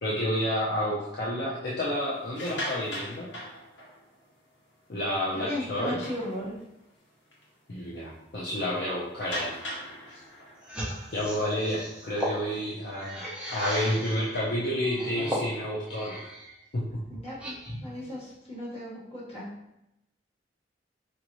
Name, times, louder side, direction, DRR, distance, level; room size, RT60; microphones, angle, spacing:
voice 1, 0.0-3.3 4.9-6.0 7.7-9.5 10.1-10.2 11.1-16.3 16.7-17.0, left 1 dB, 60° left, -7 dB, 0.7 m, -30 dB
sound 1, 2.2-4.3 4.8-4.9 5.3-5.4 5.8-6.8 7.3-7.4 7.8-7.9 9.2-12.5, equal, 85° left, 1.2 m, -39 dB
voice 2, 5.3-6.6 17.1-19.5, left 1 dB, 35° left, -8 dB, 1.5 m, -36 dB
sound 2, 10.6-14.3 14.8-16.5 16.9-17.9, equal, 5° right, 0.7 m, -36 dB
4.5 x 2.6 x 3.0 m, 0.88 s
head